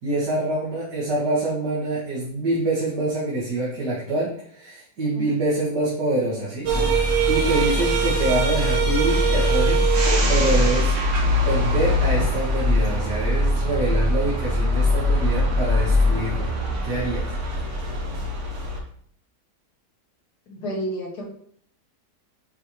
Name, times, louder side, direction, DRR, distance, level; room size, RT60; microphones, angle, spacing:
voice 1, 0.0-6.7 7.3-9.9 10.3-10.9 11.4-16.5 16.8-17.2, right 2 dB, 80° right, -8 dB, 2.4 m, -25 dB
sound 1, 6.7-18.8, equal, 50° right, 1.5 m, -21 dB
voice 2, 20.5-21.2, equal, 70° left, -2 dB, 2.2 m, -30 dB
9.1 x 4.4 x 3.2 m, 0.63 s
omnidirectional pair, 1.8 m